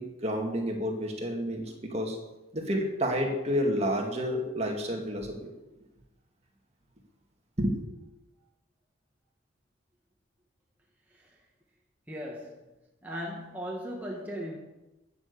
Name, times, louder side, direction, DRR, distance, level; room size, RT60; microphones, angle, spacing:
voice 1, 0.0-2.2 2.5-5.5 7.6-7.8, equal, 30° right, 2 dB, 2.0 m, -30 dB
voice 2, 12.1-12.7 13.0-14.6, equal, 10° right, -3 dB, 1.4 m, -38 dB
12.5 x 7.1 x 8.4 m, 1.0 s
head